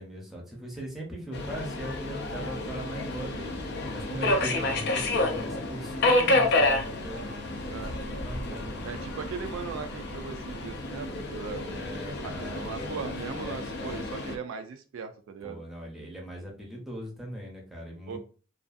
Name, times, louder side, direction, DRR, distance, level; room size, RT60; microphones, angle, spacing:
voice 1, 0.0-7.3 7.7-7.8 8.2-9.0 11.7-14.0 15.4-18.2, right 1 dB, ahead, -2 dB, 0.6 m, -40 dB
Subway metro underground, 1.3-14.4, left 2 dB, 50° left, 0.4 m, -30 dB
voice 2, 8.8-11.8 12.4-15.6 18.1-18.2, right 6 dB, 65° right, 7 dB, 0.3 m, -38 dB
2.5 x 2.3 x 2.4 m, 0.38 s
head